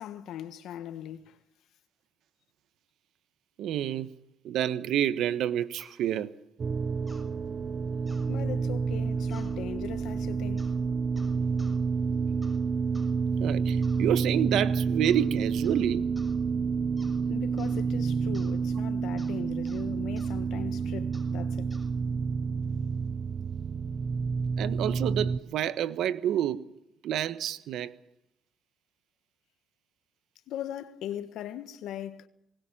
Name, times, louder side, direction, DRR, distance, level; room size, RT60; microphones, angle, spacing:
voice 1, 0.0-1.4 8.3-10.8 17.3-21.8 30.5-32.3, left 11 dB, 85° left, 1.5 m, -39 dB
voice 2, 3.6-4.2 4.4-6.3 13.4-16.1 24.6-26.7 27.0-27.9, right 10 dB, 80° right, 1.2 m, -28 dB
sound 1, 5.8-6.0 7.1-7.3 8.1-8.3 9.3-9.6 10.6-10.8 11.2-11.8 12.4-12.6 12.9-13.1 13.8-14.1 15.0-15.3 15.6-15.9 16.2-16.4 17.0-17.2 17.6-17.8 18.3-18.6 19.2-19.4 19.7-19.8 20.2-20.3 21.1-21.3 21.7-21.9, equal, ahead, 6.3 m, -55 dB
sound 2, 6.6-25.4, right 5 dB, 45° right, 0.9 m, -29 dB
20.0 x 20.0 x 7.3 m
cardioid pair, 90°, 0 cm